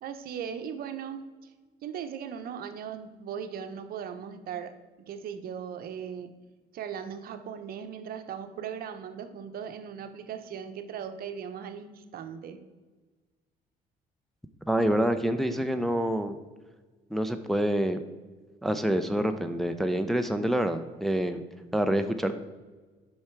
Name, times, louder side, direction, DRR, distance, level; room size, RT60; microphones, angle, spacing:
voice 1, 0.0-1.5 1.8-4.7 5.1-6.3 6.7-12.6, right 8 dB, 60° right, 8 dB, 0.9 m, -38 dB
voice 2, 14.7-16.4 17.1-18.0 18.6-21.4 21.7-22.3, equal, ahead, 7 dB, 0.5 m, -27 dB
8.5 x 5.7 x 4.6 m, 1.3 s
cardioid pair, 110°, 17 cm